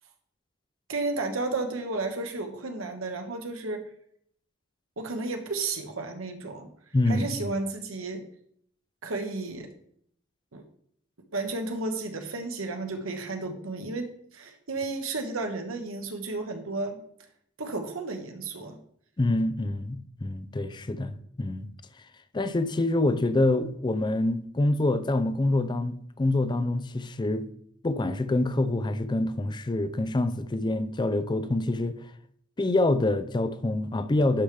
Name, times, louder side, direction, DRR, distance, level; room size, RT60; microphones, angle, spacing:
voice 1, 0.9-3.8 5.0-6.7 7.1-8.2 9.0-9.7 10.5-10.6 11.3-17.0 17.6-18.8, right 3 dB, 85° right, 1.2 m, -32 dB
voice 2, 6.9-7.3 19.2-21.7 22.3-27.5 27.8-32.0 32.6-34.4, left 2 dB, 20° left, 0.4 m, -26 dB
11.5 x 5.1 x 3.3 m
head